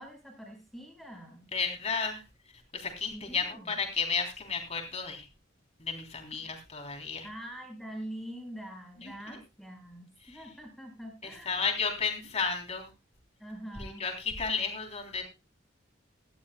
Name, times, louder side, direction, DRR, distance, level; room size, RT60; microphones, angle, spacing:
voice 1, 0.0-1.5 3.1-3.8 6.4-6.5 7.2-11.7 13.4-14.1, right 1 dB, ahead, 2 dB, 4.8 m, -44 dB
voice 2, 1.5-2.2 2.7-5.3 5.8-7.3 9.0-9.4 10.3-10.4 11.2-12.9 13.8-15.2, left 5 dB, 35° left, 3 dB, 3.4 m, -33 dB
17.5 x 13.5 x 2.3 m, 0.26 s
head